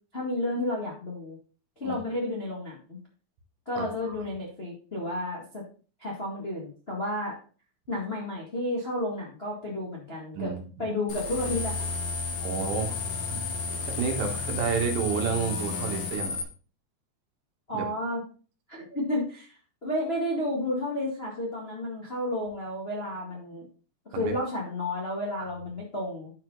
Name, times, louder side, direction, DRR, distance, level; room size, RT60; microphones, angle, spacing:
voice 1, 0.1-1.4 1.8-3.0 3.6-5.6 6.0-7.4 7.9-10.5 10.8-11.9 17.7-18.2 18.9-19.5 19.8-23.7 24.1-26.3, left 1 dB, 85° left, -3 dB, 0.5 m, -31 dB
voice 2, 3.8-4.2 10.4-10.6 12.4-13.0 13.3-13.4 14.0-16.4 17.7-17.9 24.1-24.3 25.4-25.5, right 6 dB, 90° right, 3 dB, 3.8 m, -30 dB
sound 1, 11.1-16.4, left 4 dB, 65° left, 1.4 m, -32 dB
11.5 x 4.8 x 3.9 m, 0.37 s
omnidirectional pair, 4.9 m